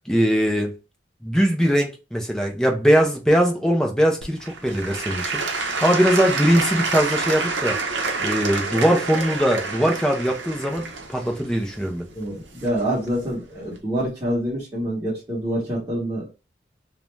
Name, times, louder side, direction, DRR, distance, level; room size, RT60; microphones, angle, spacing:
voice 1, 0.1-0.7 1.2-5.4 5.8-7.8 8.2-12.1, equal, 5° left, 0.4 m, -21 dB
Applause / Crowd, 4.2-13.1 13.7-13.8, right 4 dB, 80° right, 0.6 m, -28 dB
voice 2, 12.1-16.3, right 1 dB, 15° right, 0.9 m, -26 dB
2.5 x 2.1 x 3.1 m
head